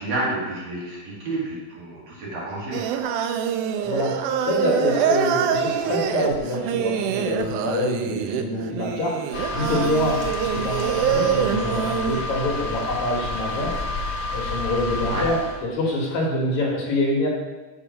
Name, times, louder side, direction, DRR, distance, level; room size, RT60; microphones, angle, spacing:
voice 1, 0.0-2.8 15.1-15.3, right 2 dB, 55° right, -6 dB, 3.2 m, -29 dB
Singing, 2.7-12.2, right 8 dB, 80° right, 2.0 m, -25 dB
voice 2, 3.8-13.8 14.3-17.3, left 1 dB, 65° left, -3 dB, 2.8 m, -26 dB
sound 1, 9.3-15.6, left 2 dB, 80° left, 1.3 m, -30 dB
7.8 x 4.7 x 6.1 m, 1.2 s
omnidirectional pair, 3.7 m